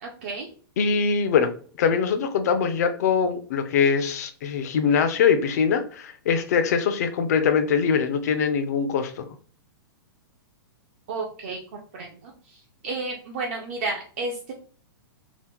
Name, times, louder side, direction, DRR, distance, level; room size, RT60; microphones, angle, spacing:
voice 1, 0.0-0.5 11.1-12.3 12.8-14.5, right 3 dB, 35° right, 0 dB, 0.4 m, -32 dB
voice 2, 0.8-1.5 1.8-9.2, left 6 dB, 45° left, 8 dB, 0.4 m, -22 dB
2.9 x 2.0 x 3.4 m, 0.43 s
supercardioid pair, 175°, 13 cm